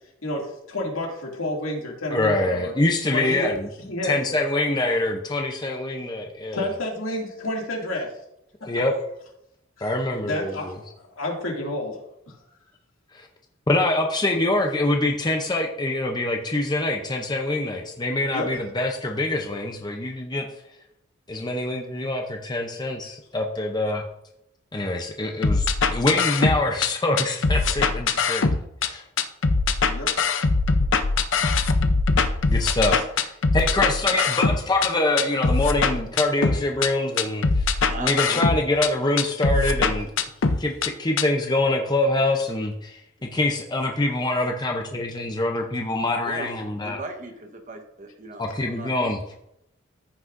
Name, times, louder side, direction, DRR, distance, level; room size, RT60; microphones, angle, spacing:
voice 1, 0.7-2.7 3.1-3.5 3.9-4.2 6.5-8.1 9.8-9.9 10.2-10.9 11.2-12.0 12.3-12.4 18.3-18.5 29.8-30.1, left 1 dB, 85° left, -1 dB, 2.4 m, -29 dB
voice 2, 2.1-3.7 4.0-6.7 8.7-8.9 9.8-10.7 13.1-13.3 13.7-20.5 21.3-24.0 24.7-29.0 32.5-40.1 40.6-47.0 48.4-49.2, left 2 dB, 20° left, 2 dB, 0.6 m, -25 dB
sound 1, 25.4-26.9 27.2-28.9 29.2-34.9 35.2-36.9 37.2-38.9 39.2-40.9 41.2-41.3, left 4 dB, 65° left, 0.6 m, -22 dB
voice 3, 37.9-38.5 46.2-46.5 46.8-49.1, right 2 dB, 35° right, 4 dB, 1.1 m, -37 dB
14.5 x 6.1 x 2.6 m, 0.81 s
head